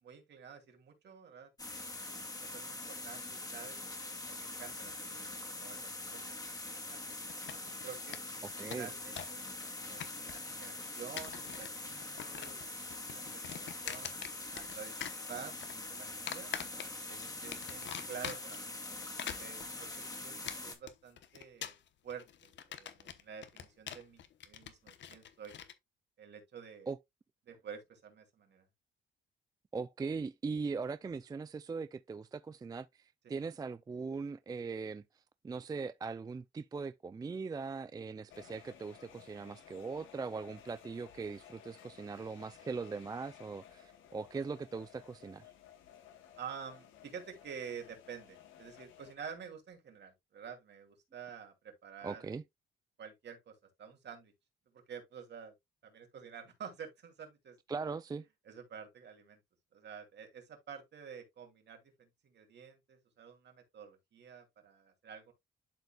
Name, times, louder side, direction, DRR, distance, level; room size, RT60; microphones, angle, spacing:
voice 1, 0.0-2.1 2.3-6.5 6.8-7.0 7.6-14.1 14.5-15.6 15.9-16.5 17.1-18.8 19.1-21.8 22.0-25.5 26.2-26.9 27.5-28.6 46.4-52.3 53.0-54.3 54.7-55.5 55.8-57.6 58.4-59.4 59.7-65.3, right 7 dB, 60° right, 2.7 m, -50 dB
sound 1, 1.6-20.7, left 2 dB, 20° left, 2.2 m, -44 dB
sound 2, 7.3-7.8 8.1-8.2 8.5-9.4 9.7-10.5 11.0-11.8 12.0-12.7 12.9-14.8 15.0-15.7 16.3-17.1 17.5-18.6 19.0-25.7, left 9 dB, 65° left, 1.0 m, -44 dB
voice 2, 8.6-8.9 26.9-27.0 29.7-35.0 35.4-45.5 52.0-52.4 57.7-58.3, right 4 dB, 20° right, 0.4 m, -40 dB
sound 3, 38.3-49.1, left 10 dB, 85° left, 1.6 m, -57 dB
12.0 x 4.0 x 2.3 m
cardioid pair, 90°, 20 cm